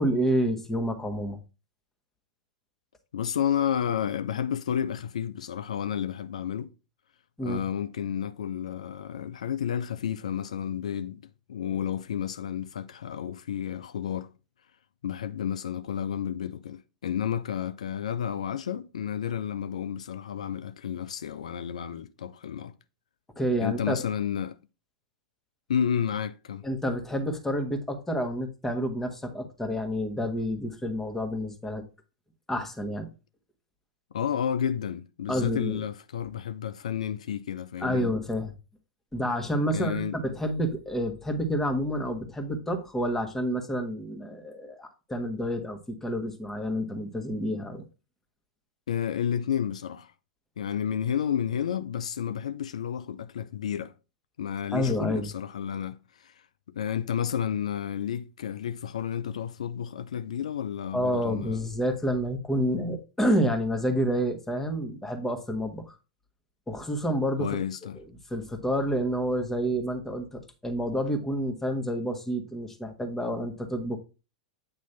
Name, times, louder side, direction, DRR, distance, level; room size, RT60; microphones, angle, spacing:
voice 1, 0.0-1.4 7.4-7.6 23.4-24.0 26.6-31.8 32.5-33.1 35.3-35.8 37.8-38.5 39.1-47.9 54.7-55.3 60.9-65.9 66.7-67.6 68.0-68.1 68.3-74.0, equal, 10° left, 1.4 m, -29 dB
voice 2, 3.1-6.7 7.4-11.2 11.5-14.3 15.0-22.7 23.6-24.6 25.7-26.6 34.1-38.1 39.7-40.2 48.9-50.1 50.6-53.9 54.4-61.6 67.4-68.0, left 9 dB, 75° left, 0.4 m, -31 dB
8.7 x 3.1 x 5.5 m
hypercardioid pair, 100°, 4 cm